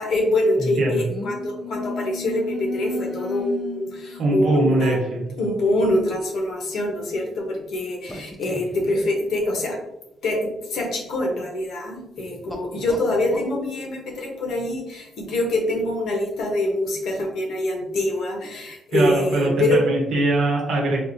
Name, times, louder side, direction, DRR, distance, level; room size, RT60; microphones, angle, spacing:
voice 1, 0.0-5.0 5.4-9.8 10.2-19.8, left 1 dB, 65° left, 1 dB, 0.8 m, -25 dB
voice 2, 0.6-1.0 4.2-5.2 18.9-21.0, right 2 dB, 70° right, -2 dB, 1.1 m, -21 dB
sound 1, 1.1-5.1 6.0-6.1 8.1-8.9 12.4-13.6, left 2 dB, 5° left, 0.4 m, -34 dB
4.4 x 2.4 x 2.6 m, 0.91 s
cardioid pair, 155°, 0 cm